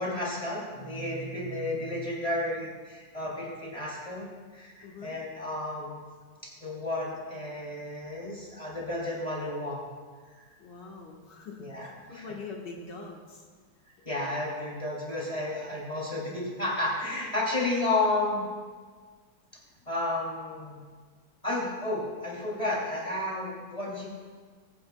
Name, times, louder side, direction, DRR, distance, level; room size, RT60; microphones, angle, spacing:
voice 1, 0.0-6.0 6.4-9.8 10.4-10.5 11.6-12.3 14.0-18.4 19.9-20.8 21.4-24.1, left 2 dB, 20° left, -4 dB, 3.0 m, -32 dB
voice 2, 4.8-5.1 10.6-13.5, left 4 dB, 70° left, -1 dB, 2.2 m, -43 dB
21.5 x 9.7 x 2.3 m, 1.5 s
omnidirectional pair, 2.0 m